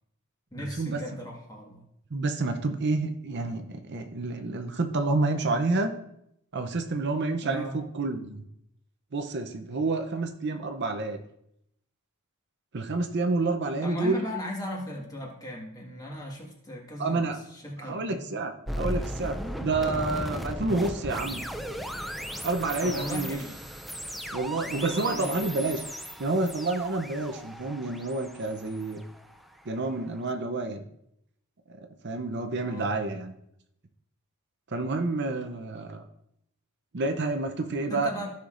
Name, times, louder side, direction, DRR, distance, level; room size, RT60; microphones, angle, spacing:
voice 1, 0.5-1.8 7.4-7.8 13.8-18.3 19.8-20.1 22.8-23.5 24.7-25.5 32.5-33.0 37.9-38.3, equal, 15° left, -1 dB, 1.6 m, -37 dB
voice 2, 2.1-5.9 6.5-8.4 9.1-11.2 12.7-14.2 17.0-17.4 17.8-21.4 22.4-23.4 24.3-25.8 26.2-29.0 29.7-30.8 32.0-33.3 34.7-36.0 36.9-38.1, right 3 dB, 50° right, 6 dB, 0.6 m, -29 dB
sound 1, 18.7-29.7, equal, ahead, 0.3 m, -36 dB
14.5 x 5.8 x 2.5 m, 0.77 s
head